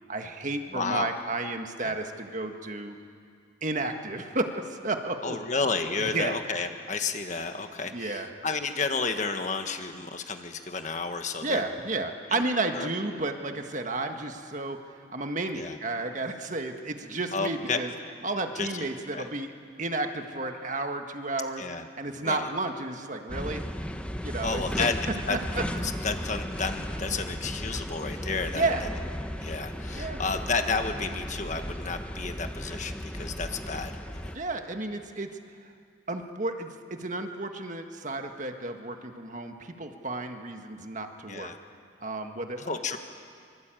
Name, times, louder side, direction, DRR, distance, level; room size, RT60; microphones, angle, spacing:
voice 1, 0.1-3.0 3.6-5.4 6.0-6.4 7.9-8.3 11.4-17.9 18.2-19.5 19.8-21.6 22.0-23.6 24.2-24.9 25.3-25.6 28.5-28.8 29.9-30.2 34.3-35.3 35.6-35.7 36.1-41.5 42.0-43.0, right 2 dB, 40° right, 5 dB, 1.6 m, -32 dB
voice 2, 0.7-1.1 1.8-1.9 5.2-11.6 12.3-12.4 12.7-12.9 15.5-15.8 17.3-17.8 18.6-18.9 19.1-19.3 21.6-21.8 22.2-22.5 24.4-25.0 25.3-25.4 26.0-28.7 29.4-34.4 41.3-41.6 42.6-43.0, left 4 dB, 40° left, 6 dB, 1.5 m, -31 dB
sound 1, 23.3-34.4, equal, 5° left, 1.0 m, -35 dB
24.5 x 24.0 x 9.1 m, 2.3 s
head